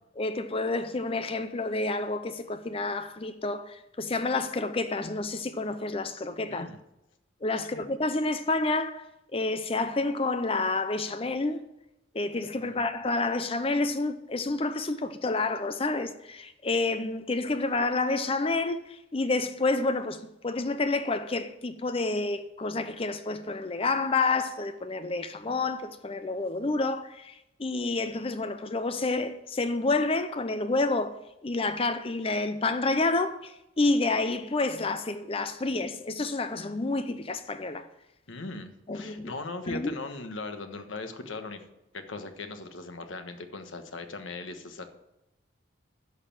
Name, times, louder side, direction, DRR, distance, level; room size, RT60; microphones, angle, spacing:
voice 1, 0.2-6.7 7.4-11.6 12.1-31.2 31.4-37.9 38.9-39.4 39.7-40.0, left 3 dB, 30° left, 0.5 m, -29 dB
voice 2, 6.5-6.8 7.7-7.8 12.6-12.8 38.3-41.7 41.9-44.8, left 3 dB, 90° left, 1.4 m, -39 dB
11.0 x 6.8 x 7.5 m
head